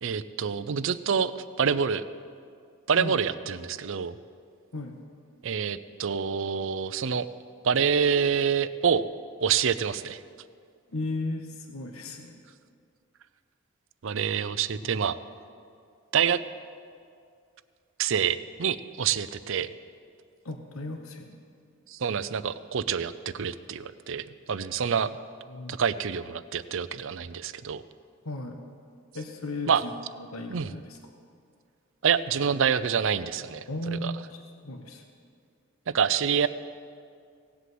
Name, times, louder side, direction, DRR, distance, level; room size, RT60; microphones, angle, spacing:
voice 1, 0.0-1.3 1.6-2.0 2.9-4.1 5.4-7.3 7.6-9.0 9.4-10.2 14.0-15.2 16.1-16.4 18.0-19.7 21.9-25.2 25.7-27.8 29.7-29.8 30.5-30.7 32.0-33.6 34.0-34.1 35.9-36.5, right 7 dB, 65° right, 15 dB, 0.5 m, -26 dB
voice 2, 10.9-12.4 20.4-21.4 25.5-25.8 28.2-28.6 29.1-31.0 33.7-35.0, left 2 dB, 90° left, 5 dB, 1.2 m, -36 dB
17.5 x 8.3 x 7.8 m, 2.3 s
head